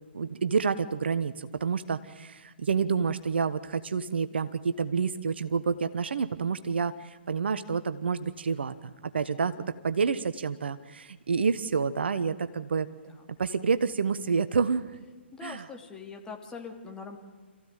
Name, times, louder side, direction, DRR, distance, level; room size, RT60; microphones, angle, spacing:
voice 1, 0.1-12.9 13.4-14.9 15.4-15.6, right 5 dB, 60° right, 12 dB, 1.1 m, -28 dB
voice 2, 12.9-13.2 15.3-17.2, left 5 dB, 10° left, 2 dB, 2.8 m, -43 dB
27.0 x 15.5 x 9.2 m, 1.3 s
figure-of-eight pair, 125°, 6 cm